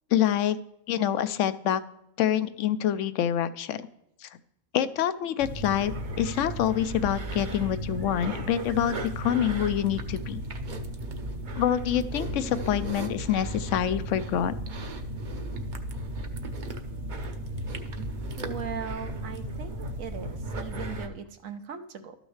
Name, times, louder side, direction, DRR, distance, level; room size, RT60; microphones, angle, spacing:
voice 1, 0.1-0.6 0.9-1.8 2.2-3.9 4.2-4.3 4.7-5.9 6.2-10.4 11.5-14.6, left 10 dB, 70° left, 13 dB, 0.9 m, -26 dB
sound 1, 5.4-21.1, right 1 dB, 40° right, 0.8 m, -35 dB
voice 2, 18.4-22.2, right 7 dB, 75° right, 7 dB, 1.3 m, -39 dB
12.5 x 6.3 x 3.2 m, 0.82 s
omnidirectional pair, 1.4 m